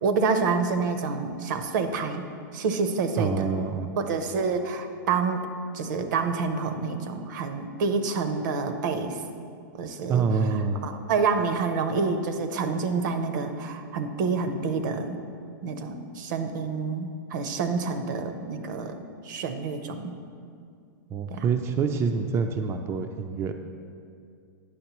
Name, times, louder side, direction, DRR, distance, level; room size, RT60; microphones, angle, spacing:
voice 1, 0.0-2.2 2.5-3.5 4.0-5.5 5.7-9.2 9.7-10.2 10.8-15.2 15.6-20.1 21.3-21.4, right 4 dB, 65° right, 8 dB, 0.7 m, -28 dB
voice 2, 3.2-4.0 10.1-10.8 21.1-23.5, right 5 dB, 25° right, 5 dB, 0.4 m, -26 dB
9.3 x 6.3 x 3.0 m, 2.3 s
hypercardioid pair, 120°, 11 cm